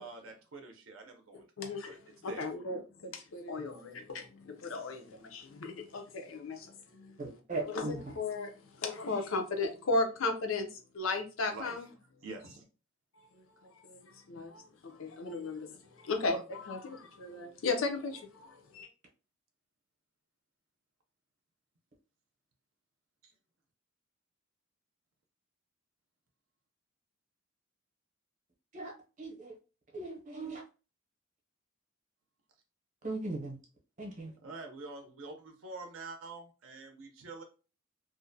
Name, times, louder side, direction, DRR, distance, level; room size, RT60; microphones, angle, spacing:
voice 1, 0.0-1.4 1.9-2.0 2.3-2.5 11.5-11.8 12.2-12.6 23.2-23.3 34.4-37.4, right 3 dB, 75° right, 0.6 m, -46 dB
voice 2, 1.6-7.3 7.7-11.9 13.1-18.9, left 3 dB, 70° left, 0.6 m, -36 dB
voice 3, 7.2-7.9 28.7-28.9 29.2-29.5 29.9-30.6 33.0-33.6 34.0-34.3, right 2 dB, 35° right, 0.8 m, -38 dB
2.5 x 2.1 x 2.6 m
head